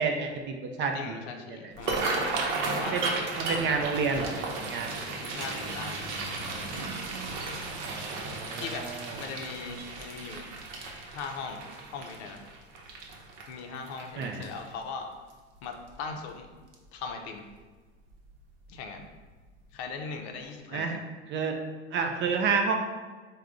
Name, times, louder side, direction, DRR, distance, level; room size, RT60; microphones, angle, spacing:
voice 1, 0.0-1.2 1.5-1.7 2.8-3.1 3.4-4.3 4.7-4.9 7.8-9.2 14.2-14.5 20.7-21.0 21.3-21.6 21.9-22.7, right 5 dB, 35° right, 4 dB, 0.4 m, -30 dB
voice 2, 0.9-2.2 2.7-3.0 5.3-6.1 8.6-8.9 9.1-10.5 11.1-11.6 11.9-12.4 13.5-15.1 15.6-16.5 16.9-17.4 18.7-19.0 19.7-21.0, left 5 dB, 65° left, 4 dB, 0.6 m, -39 dB
sound 1, 1.7-14.8 15.3-15.6 15.9-16.3 16.7-16.9 18.1-18.3 18.7-18.8 19.3-19.4, right 3 dB, 55° right, 0.8 m, -34 dB
3.5 x 2.2 x 3.6 m, 1.4 s
hypercardioid pair, 90°, 35 cm